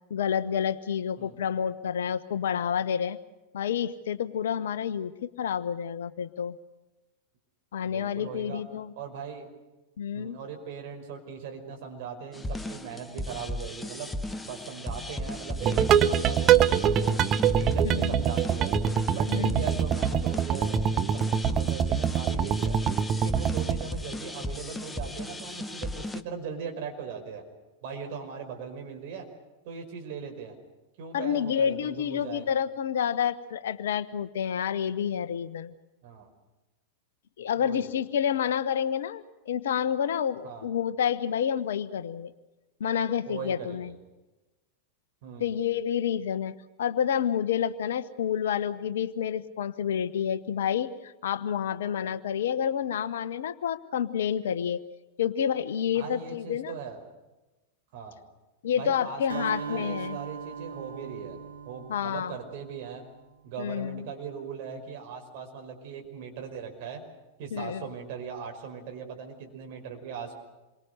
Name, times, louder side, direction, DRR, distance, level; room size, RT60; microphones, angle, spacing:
voice 1, 0.1-3.2 3.5-6.6 7.7-8.9 10.0-10.4 17.8-18.2 19.3-19.6 31.1-35.7 37.4-42.3 42.8-43.9 45.4-46.5 46.8-54.8 55.2-56.7 58.6-60.2 61.9-62.3 63.6-64.1 67.5-67.9, left 8 dB, 60° left, 14 dB, 1.0 m, -29 dB
voice 2, 7.8-8.6 9.0-9.5 10.1-14.1 14.4-17.2 17.6-18.8 19.1-22.8 23.1-27.4 27.8-29.3 29.6-30.6 31.0-32.5 36.0-36.3 37.6-37.9 40.4-40.7 43.3-44.0 45.2-45.5 55.9-57.0 57.9-58.2 58.7-61.4 61.7-63.0 63.4-67.0 67.4-70.4, right 6 dB, 50° right, 3 dB, 5.4 m, -39 dB
sound 1, 12.3-26.2, left 1 dB, 10° left, 1.0 m, -36 dB
sound 2, 15.6-23.8, right 8 dB, 30° right, 1.0 m, -24 dB
Acoustic guitar, 59.3-63.2, right 6 dB, 70° right, 1.9 m, -39 dB
27.5 x 23.5 x 6.7 m, 1.1 s
figure-of-eight pair, 90°, 0 cm